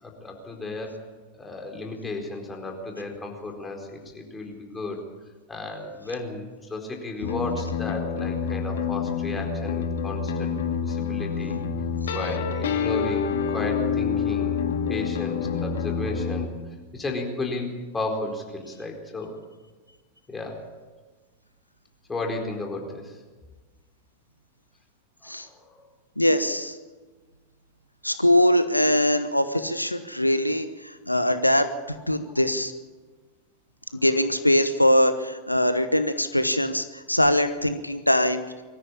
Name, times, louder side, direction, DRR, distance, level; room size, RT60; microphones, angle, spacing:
voice 1, 0.0-1.1 1.4-5.0 5.5-10.5 10.8-11.6 12.1-14.6 14.9-16.5 16.9-19.4 20.3-20.7 22.1-23.2 25.2-25.7 32.2-32.3, left 2 dB, 15° left, 2 dB, 4.4 m, -34 dB
sound 1, 7.2-16.5, left 6 dB, 60° left, 2.1 m, -27 dB
voice 2, 26.2-26.8 28.0-31.7 32.1-32.7 33.9-38.4, left 1 dB, 85° left, 10 dB, 1.0 m, -22 dB
23.0 x 14.5 x 8.7 m, 1.3 s
figure-of-eight pair, 90°, 0 cm